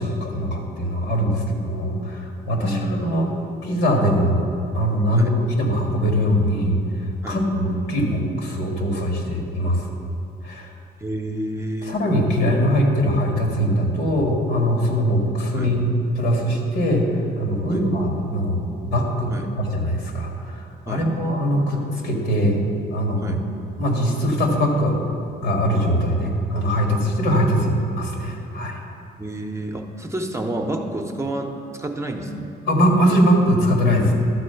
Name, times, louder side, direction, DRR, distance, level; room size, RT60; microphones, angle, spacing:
voice 1, 0.0-3.3 3.6-4.5 4.7-6.8 7.3-9.8 10.4-10.7 11.8-15.9 16.2-17.1 17.4-19.3 19.6-23.4 23.8-25.0 25.4-28.8 32.7-34.1, equal, 85° left, 0 dB, 1.9 m, -21 dB
voice 2, 2.5-3.0 5.1-5.3 7.2-7.4 11.0-12.0 15.5-15.8 17.7-17.9 19.3-19.5 20.9-21.1 23.2-23.4 27.6-27.7 29.2-32.5, right 1 dB, 15° right, 3 dB, 0.7 m, -29 dB
12.0 x 4.2 x 6.8 m, 2.6 s
cardioid pair, 115°, 18 cm